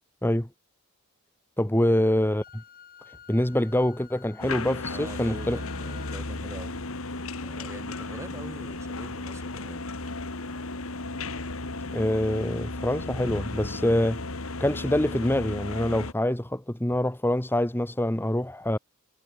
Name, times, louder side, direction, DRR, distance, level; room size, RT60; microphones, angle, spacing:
voice 1, 1.6-2.6 3.1-5.6 11.9-14.2 14.6-18.8, left 1 dB, 10° left, 1.3 m, -25 dB
Wind instrument woodwind instrument, 2.4-6.3, left 8 dB, 45° left, 6.2 m, -50 dB
sound 1, 4.4-16.1, left 2 dB, 85° left, 2.3 m, -35 dB
voice 2, 4.9-6.8 7.4-9.9 13.7-14.0, right 1 dB, 15° right, 3.8 m, -43 dB
head